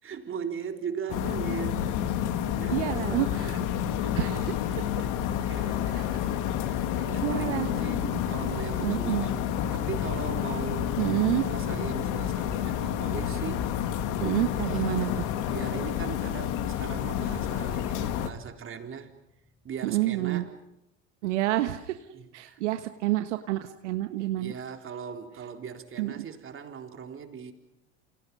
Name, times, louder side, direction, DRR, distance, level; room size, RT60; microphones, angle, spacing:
voice 1, 0.0-1.9 2.3-3.7 3.9-4.3 5.0-5.9 6.2-11.0 11.3-13.8 14.6-19.1 19.6-20.5 22.1-22.6 24.4-27.5, right 7 dB, 35° right, 4 dB, 4.1 m, -39 dB
sound 1, 1.1-18.3, left 10 dB, 60° left, 2.5 m, -29 dB
voice 2, 2.7-3.6 4.1-4.5 5.9-6.2 7.2-7.7 8.0-8.1 8.8-9.3 11.0-11.4 14.2-15.2 19.8-20.4 21.2-22.0 22.3-24.5 26.0-26.3, right 16 dB, 75° right, 8 dB, 1.5 m, -28 dB
sound 2, 7.2-16.8, left 1 dB, 10° left, 3.7 m, -45 dB
29.0 x 29.0 x 5.6 m, 0.87 s
hypercardioid pair, 75°, 35 cm